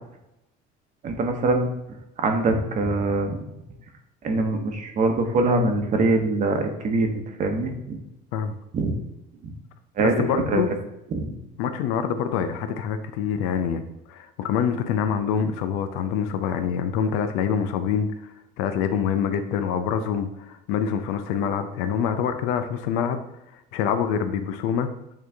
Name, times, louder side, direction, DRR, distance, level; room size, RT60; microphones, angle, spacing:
voice 1, 1.0-1.7 2.2-3.4 4.2-8.0 8.7-9.0 9.4-9.5 10.0-10.1 10.5-10.6 11.1-11.4, right 2 dB, 40° right, 4 dB, 1.0 m, -23 dB
voice 2, 10.0-10.7 11.6-13.8 14.1-18.1 18.6-23.2 23.7-24.9, left 7 dB, 80° left, 8 dB, 0.6 m, -25 dB
8.7 x 3.2 x 3.4 m, 0.86 s
cardioid pair, 130°, 20 cm